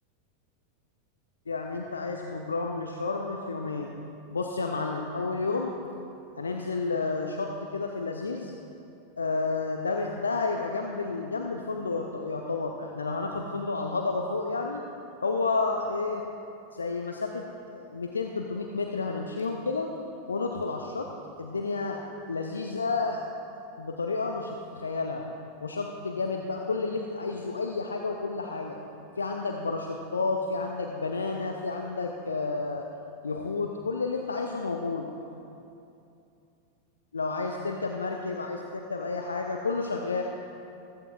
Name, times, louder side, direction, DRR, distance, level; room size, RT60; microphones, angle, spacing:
voice 1, 1.5-3.9 4.3-5.7 6.4-8.5 9.2-14.8 15.2-16.2 16.7-17.4 17.7-19.9 20.3-21.1 21.4-22.0 22.3-23.2 23.8-25.2 25.6-28.8 29.2-32.9 33.2-35.1 37.1-40.2, left 3 dB, 75° left, 3 dB, 0.6 m, -31 dB
14.5 x 14.0 x 2.4 m, 2.7 s
figure-of-eight pair, 90°, 0 cm